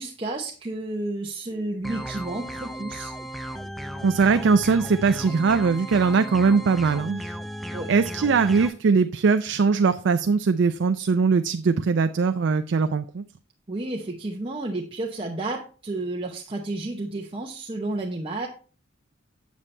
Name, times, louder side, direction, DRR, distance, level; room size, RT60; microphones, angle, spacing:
voice 1, 0.0-3.1 7.7-7.9 13.7-18.5, right 2 dB, 30° right, 0 dB, 0.8 m, -31 dB
sound 1, 1.8-8.7, equal, ahead, 0.5 m, -35 dB
voice 2, 4.0-7.3 7.9-13.2, right 5 dB, 65° right, 9 dB, 0.4 m, -21 dB
8.3 x 7.3 x 3.2 m, 0.38 s
head